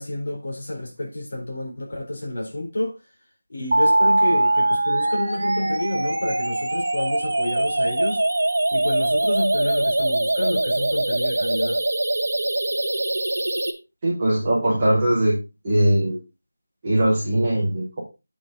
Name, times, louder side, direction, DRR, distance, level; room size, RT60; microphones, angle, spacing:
voice 1, 0.0-2.9 3.5-8.2 8.7-11.8, left 1 dB, 35° left, 3.9 m, -29 dB
sound 1, 3.7-13.7, right 2 dB, 65° right, 1.9 m, -22 dB
voice 2, 14.0-15.3 15.6-16.2 16.8-18.0, right 1 dB, 15° right, 3.3 m, -20 dB
8.6 x 7.4 x 3.9 m
figure-of-eight pair, 180°, 0 cm